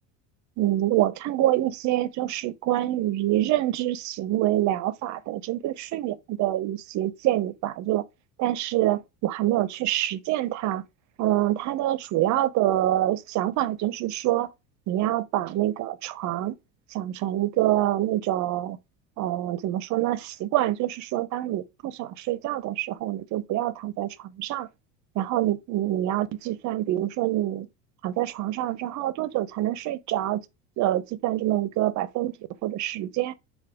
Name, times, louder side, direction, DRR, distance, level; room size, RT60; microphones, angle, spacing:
voice 1, 0.6-8.0 8.4-10.8 11.2-14.5 14.9-16.5 16.9-18.8 19.2-24.7 25.2-27.7 28.0-30.4 30.8-32.3 32.6-33.3, right 14 dB, 45° right, 0.5 m, -26 dB
4.6 x 2.3 x 4.7 m
hypercardioid pair, 80°, 41 cm